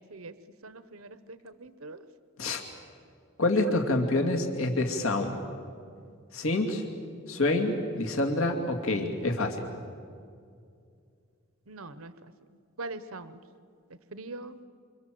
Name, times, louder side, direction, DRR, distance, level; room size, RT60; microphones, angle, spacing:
voice 1, 0.6-2.0 3.6-3.7 11.7-12.1 12.8-13.4 14.1-14.6, right 2 dB, 85° right, 12 dB, 1.1 m, -42 dB
voice 2, 3.4-5.4 6.3-6.8 7.3-9.6, left 2 dB, 80° left, 3 dB, 2.6 m, -27 dB
28.0 x 26.5 x 7.8 m, 2.3 s
head